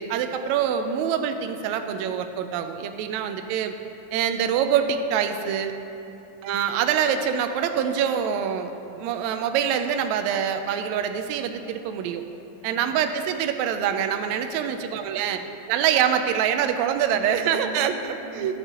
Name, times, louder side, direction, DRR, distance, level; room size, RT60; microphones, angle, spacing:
voice 1, 0.0-3.7 4.1-5.7 6.4-12.2 12.6-15.4 15.7-17.9 18.3-18.5, right 8 dB, 85° right, 7 dB, 1.6 m, -25 dB
voice 2, 5.9-6.3 12.5-12.9 14.6-15.3 17.0-18.6, right 1 dB, 60° right, -6 dB, 2.6 m, -42 dB
11.5 x 8.0 x 3.7 m, 2.8 s
omnidirectional pair, 3.8 m